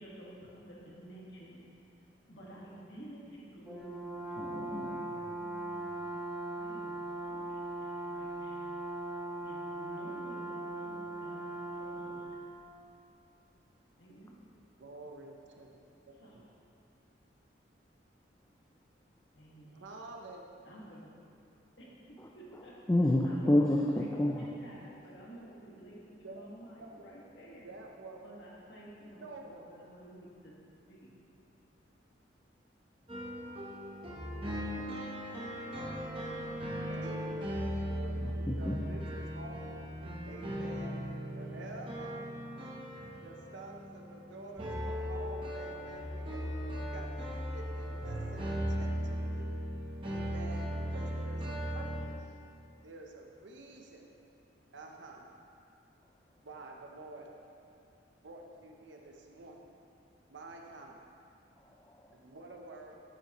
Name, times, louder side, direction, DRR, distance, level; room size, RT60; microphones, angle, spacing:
voice 1, 0.0-1.6 2.3-5.3 5.9-7.0 7.2-8.8 9.4-12.4 14.0-14.5 16.2-16.4 19.3-20.0 20.6-21.1 21.8-22.7 23.2-27.7 28.2-30.5 30.9-31.1, right 1 dB, 70° left, -5 dB, 1.8 m, -52 dB
Brass instrument, 3.6-12.4, right 2 dB, 5° right, 1.1 m, -39 dB
voice 2, 4.4-5.0 5.5-5.9 22.9-24.5 38.2-38.8 61.6-62.0, left 1 dB, 15° left, -1 dB, 0.4 m, -30 dB
voice 3, 14.8-15.8 16.1-16.4 19.7-20.7 23.4-23.7 26.2-26.5 26.8-27.0 27.6-28.2 29.2-29.7 36.9-39.8 40.3-41.0 41.3-42.2 43.2-46.4 46.7-49.5 50.0-52.3 52.8-54.1 54.7-55.2 56.4-57.3 58.2-59.6 60.3-61.0 62.1-63.0, right 2 dB, 80° right, 1 dB, 0.8 m, -49 dB
sound 1, 33.1-52.1, equal, 30° right, 1.0 m, -38 dB
9.1 x 8.6 x 3.1 m, 2.6 s
head